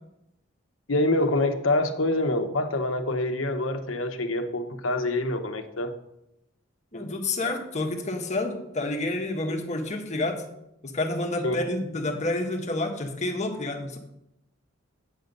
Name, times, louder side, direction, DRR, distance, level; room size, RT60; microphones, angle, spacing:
voice 1, 0.9-5.9 11.4-11.6, left 2 dB, 70° left, 6 dB, 1.0 m, -26 dB
voice 2, 6.9-10.4 10.8-14.0, left 2 dB, 35° left, 3 dB, 1.3 m, -29 dB
8.7 x 6.6 x 5.3 m, 0.84 s
head